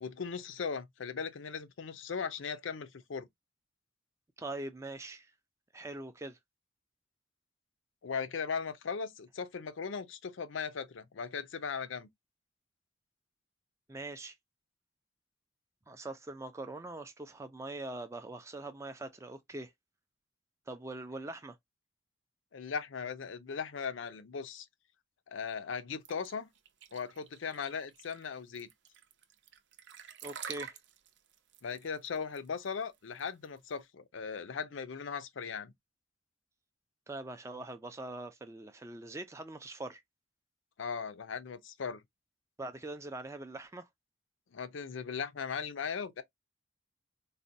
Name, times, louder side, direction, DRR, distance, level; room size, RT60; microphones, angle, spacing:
voice 1, 0.0-3.3 8.0-12.1 22.5-24.7 25.3-26.5 26.9-28.7 31.6-35.7 40.8-42.0 44.5-46.2, left 6 dB, 75° left, 0.5 m, -38 dB
voice 2, 4.4-5.3 5.7-6.4 13.9-14.4 15.9-19.7 20.7-21.6 30.2-30.8 37.1-40.0 42.6-43.9, right 2 dB, 15° right, 0.3 m, -42 dB
sound 1, 26.0-33.7, right 8 dB, 65° right, 0.6 m, -48 dB
4.0 x 2.2 x 2.6 m
head